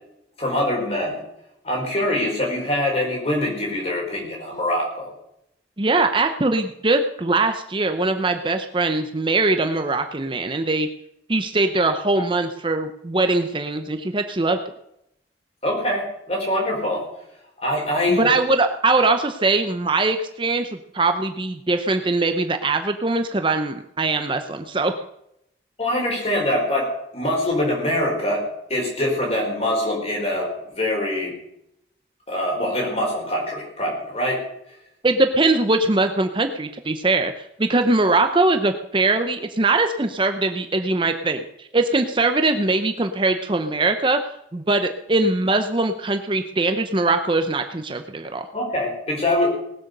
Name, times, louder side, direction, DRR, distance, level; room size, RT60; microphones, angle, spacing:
voice 1, 0.4-1.2 1.6-5.1 15.6-17.1 17.6-18.3 25.8-28.4 28.7-31.3 32.3-34.4 48.5-49.5, left 1 dB, 35° left, -1 dB, 4.6 m, -24 dB
voice 2, 5.8-10.9 11.3-14.6 18.1-20.7 20.9-24.9 35.0-44.2 44.5-48.5, right 2 dB, 25° right, 7 dB, 0.7 m, -21 dB
19.0 x 8.0 x 6.6 m, 0.80 s
head